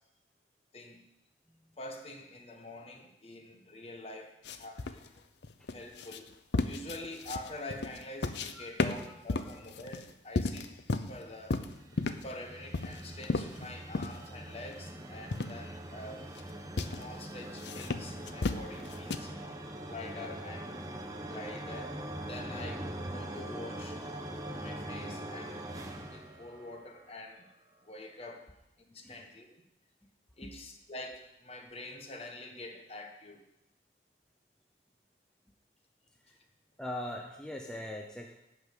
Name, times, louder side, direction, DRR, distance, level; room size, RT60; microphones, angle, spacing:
voice 1, 0.7-1.0 1.8-5.1 5.7-6.3 6.6-10.7 11.1-11.6 12.2-16.3 16.8-19.3 19.9-20.8 21.3-22.0 22.3-24.0 24.6-25.8 26.1-27.5 27.8-28.5 28.9-29.5 30.4-33.4, left 2 dB, 35° left, 1.2 m, -46 dB
voice 2, 1.5-1.8 5.6-5.7 8.5-9.0 9.3-9.6 13.8-13.9 29.0-29.3 30.4-30.5 36.2-36.4 36.8-38.3, left 1 dB, 5° left, 0.7 m, -42 dB
sound 1, 4.4-8.5 8.8-11.2 11.5-12.3 12.7-14.2 14.6-14.7 15.3-15.6 16.1-16.4 16.8-17.0 17.6-19.2, left 3 dB, 80° left, 0.7 m, -34 dB
sound 2, 11.1-27.2, right 1 dB, 20° right, 0.9 m, -42 dB
11.5 x 5.5 x 8.1 m
head